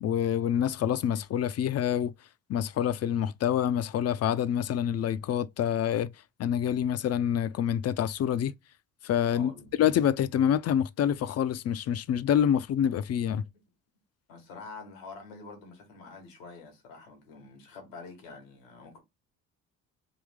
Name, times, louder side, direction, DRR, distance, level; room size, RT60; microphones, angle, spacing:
voice 1, 0.0-2.1 2.5-6.1 6.4-8.5 9.0-9.5 9.8-13.4, left 9 dB, 40° left, 0.5 m, -27 dB
voice 2, 9.3-9.7 14.3-19.0, left 4 dB, 85° left, 1.5 m, -46 dB
3.5 x 2.7 x 3.6 m
hypercardioid pair, 55°, 39 cm